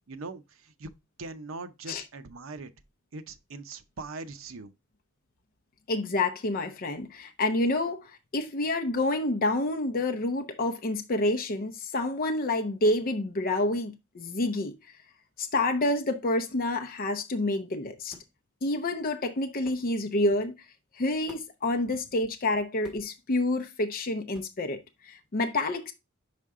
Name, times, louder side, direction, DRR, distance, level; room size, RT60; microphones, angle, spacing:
voice 1, 0.1-0.9 1.2-2.7 3.1-4.7 21.9-22.0, right 3 dB, 80° right, 0.7 m, -41 dB
voice 2, 5.9-14.8 15.4-18.2 18.6-20.5 21.0-25.9, left 2 dB, 45° left, 0.6 m, -28 dB
sound 1, 18.1-18.4 19.6-19.9 21.3-21.6 22.8-23.2 24.3-24.6, left 1 dB, 5° right, 1.7 m, -51 dB
5.6 x 5.1 x 3.6 m
head